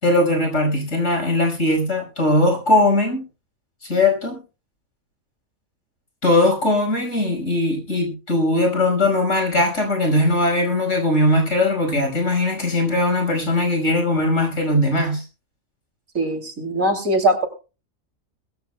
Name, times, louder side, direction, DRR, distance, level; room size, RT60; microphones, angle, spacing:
voice 1, 0.0-3.2 3.9-4.4 6.2-15.2, left 1 dB, 65° left, 4 dB, 5.7 m, -19 dB
voice 2, 16.1-17.5, right 1 dB, 75° right, 4 dB, 3.2 m, -21 dB
21.0 x 15.0 x 2.2 m, 0.33 s
omnidirectional pair, 1.4 m